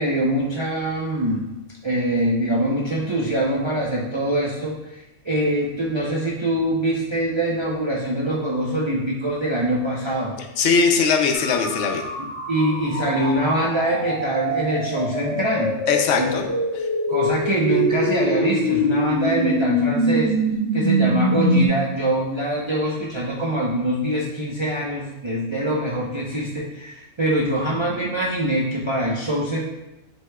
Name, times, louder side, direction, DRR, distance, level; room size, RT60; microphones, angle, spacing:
voice 1, 0.0-1.5 1.8-10.4 12.2-15.7 16.2-16.3 17.1-20.3 20.7-29.6, right 1 dB, 40° right, -4 dB, 0.4 m, -24 dB
voice 2, 10.6-12.0 15.9-16.4 16.7-16.9, left 5 dB, 80° left, 4 dB, 0.9 m, -20 dB
sound 1, 11.3-21.7, equal, 25° left, 1.4 m, -23 dB
7.7 x 2.9 x 2.2 m, 0.95 s
omnidirectional pair, 1.3 m